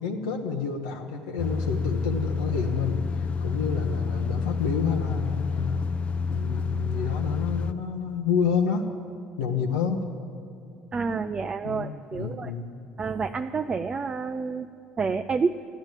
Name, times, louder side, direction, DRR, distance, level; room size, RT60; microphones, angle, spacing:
voice 1, 0.0-5.9 6.3-9.0 9.4-10.1 11.6-12.7, left 6 dB, 75° left, 2 dB, 0.9 m, -29 dB
sound 1, 1.4-7.7, left 5 dB, 40° left, 0.6 m, -29 dB
voice 2, 10.9-12.5 13.0-14.7 15.0-15.6, right 5 dB, 30° right, 7 dB, 0.5 m, -29 dB
14.0 x 10.5 x 9.0 m, 2.5 s
figure-of-eight pair, 60°, 3 cm